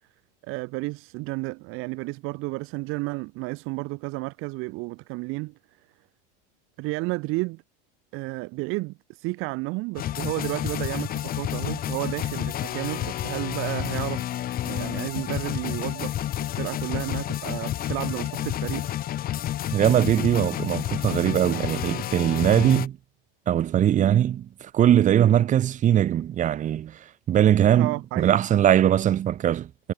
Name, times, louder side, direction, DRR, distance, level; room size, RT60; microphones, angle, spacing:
voice 1, 0.5-5.5 6.8-7.6 8.1-14.3 14.6-18.9 27.8-28.4, right 25 dB, 45° right, 4.7 m, -32 dB
sound 1, 10.0-22.9, left 12 dB, 30° left, 6.2 m, -30 dB
voice 2, 19.7-23.0 23.5-27.0 27.3-29.9, right 11 dB, 25° right, 2.9 m, -21 dB
supercardioid pair, 150°, 30 cm